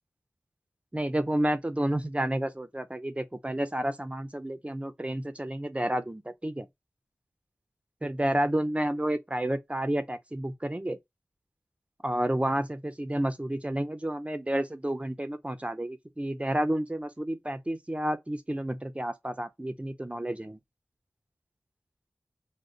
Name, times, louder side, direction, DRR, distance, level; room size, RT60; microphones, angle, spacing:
voice 1, 0.9-6.7 8.0-11.0 12.0-20.6, right 1 dB, 20° right, 0.5 m, -30 dB
3.7 x 2.1 x 2.4 m
wide cardioid pair, 45°, 6 cm